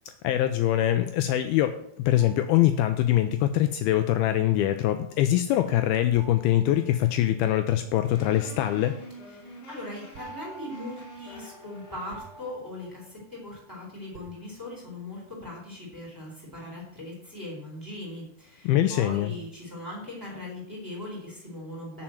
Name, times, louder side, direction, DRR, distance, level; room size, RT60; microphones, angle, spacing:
voice 1, 0.2-1.7 2.1-9.0 18.6-19.3, left 12 dB, 90° left, 8 dB, 2.2 m, -23 dB
sound 1, 2.2-3.4 6.2-7.8 10.2-13.7 14.2-15.1, right 4 dB, 75° right, 2.9 m, -49 dB
sound 2, 8.0-12.6, left 1 dB, 70° left, 4.8 m, -47 dB
voice 2, 9.3-22.0, left 1 dB, 5° right, -4 dB, 3.3 m, -40 dB
8.7 x 5.8 x 7.7 m, 0.71 s
omnidirectional pair, 5.0 m